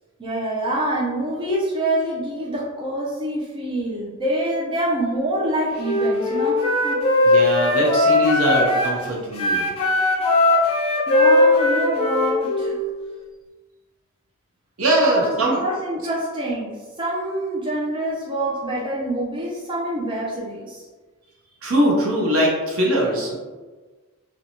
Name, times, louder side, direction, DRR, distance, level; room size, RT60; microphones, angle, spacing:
voice 1, 0.2-7.0 11.1-12.8 15.0-20.9, right 1 dB, 20° right, -5 dB, 0.4 m, -26 dB
Wind instrument woodwind instrument, 5.7-9.0 9.3-12.7, left 2 dB, 25° left, 0.6 m, -19 dB
voice 2, 7.2-9.7 14.8-15.6 21.6-23.3, right 1 dB, 70° right, -2 dB, 0.7 m, -21 dB
2.6 x 2.2 x 2.8 m, 1.3 s
head